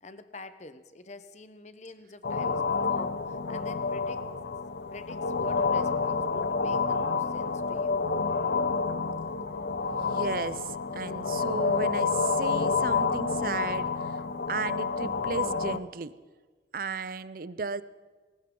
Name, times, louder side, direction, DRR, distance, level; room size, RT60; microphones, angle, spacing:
voice 1, 0.0-4.2 4.9-8.1, left 2 dB, 40° left, 11 dB, 0.9 m, -46 dB
sound 1, 2.2-15.8, left 4 dB, 65° left, 0.7 m, -29 dB
voice 2, 9.8-14.1 14.5-16.1 16.7-17.8, right 4 dB, 50° right, 16 dB, 0.5 m, -35 dB
19.5 x 19.0 x 3.8 m, 1.4 s
head